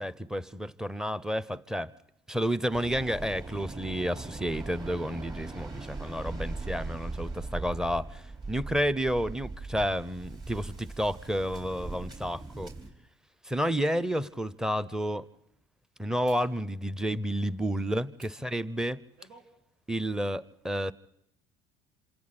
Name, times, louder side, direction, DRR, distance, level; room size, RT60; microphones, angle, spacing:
voice 1, 0.0-1.9 2.3-12.7 13.4-15.3 16.0-19.0 19.9-20.9, equal, 5° right, 17 dB, 0.9 m, -31 dB
Waves surf, 2.7-12.9, right 3 dB, 30° right, 4.5 m, -40 dB
sound 1, 13.4-13.5 14.1-14.3 16.2-16.5 18.1-18.4 18.9-19.5 19.9-20.1, right 2 dB, 85° right, 4.8 m, -55 dB
27.5 x 27.0 x 4.3 m, 0.77 s
supercardioid pair, 90°, 15 cm